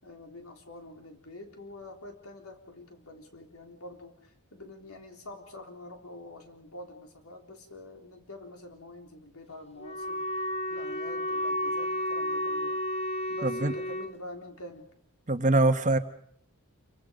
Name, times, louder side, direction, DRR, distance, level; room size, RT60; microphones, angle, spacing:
voice 1, 0.0-12.8 13.3-14.9, left 1 dB, 75° left, 3 dB, 3.7 m, -46 dB
Wind instrument woodwind instrument, 9.8-14.2, equal, 30° left, 1.1 m, -32 dB
voice 2, 13.4-13.7 15.3-16.0, right 2 dB, 35° right, 9 dB, 1.2 m, -23 dB
28.5 x 24.0 x 5.2 m, 0.64 s
head